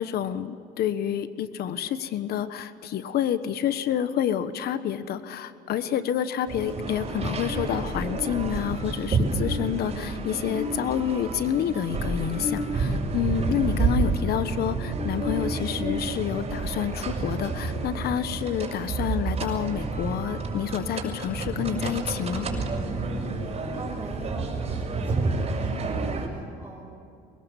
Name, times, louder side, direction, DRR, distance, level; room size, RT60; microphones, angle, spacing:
voice 1, 0.0-22.5, left 9 dB, 70° left, 12 dB, 1.3 m, -28 dB
sound 1, 6.5-26.3, right 3 dB, 35° right, 6.2 m, -29 dB
voice 2, 23.5-26.8, right 2 dB, 10° right, -4 dB, 5.5 m, -41 dB
24.5 x 21.5 x 7.3 m, 2.6 s
cardioid pair, 110°, 17 cm